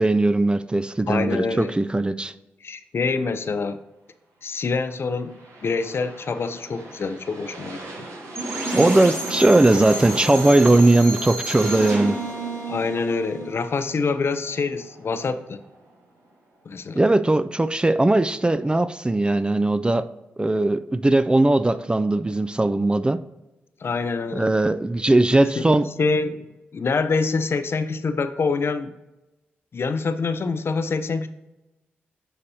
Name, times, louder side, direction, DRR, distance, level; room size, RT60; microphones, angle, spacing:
voice 1, 0.0-2.3 8.7-12.2 17.0-20.1 20.4-23.2 24.3-25.9, right 2 dB, 20° right, 13 dB, 0.4 m, -19 dB
voice 2, 1.1-1.7 2.6-3.8 4.4-8.1 12.7-15.6 16.7-17.0 23.8-24.5 25.6-26.5 26.7-28.9 29.7-31.3, left 4 dB, 55° left, 10 dB, 0.5 m, -26 dB
sound 1, 4.9-16.3 16.6-16.7, right 2 dB, 80° right, 1.0 m, -39 dB
sound 2, 8.4-14.2, right 1 dB, 60° right, 1.9 m, -31 dB
9.8 x 4.2 x 2.8 m, 1.0 s
supercardioid pair, 40°, 5 cm